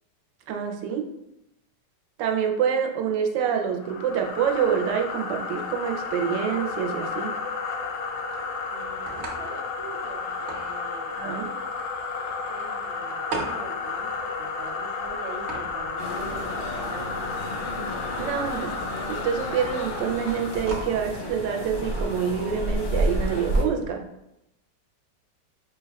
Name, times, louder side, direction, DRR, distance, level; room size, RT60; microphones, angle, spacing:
voice 1, 0.5-1.1 2.2-7.3 11.2-11.5 18.2-18.7 19.1-24.0, right 7 dB, 90° right, 4 dB, 1.3 m, -26 dB
sound 1, 3.8-20.8, left 4 dB, 85° left, 1.3 m, -32 dB
sound 2, 7.6-23.9, right 2 dB, 50° right, 1.0 m, -41 dB
voice 2, 8.7-11.2 12.2-17.2, right 3 dB, 65° right, 2 dB, 0.6 m, -43 dB
sound 3, 16.0-23.6, equal, 50° left, 0.6 m, -31 dB
5.7 x 2.3 x 3.4 m, 0.85 s
omnidirectional pair, 1.9 m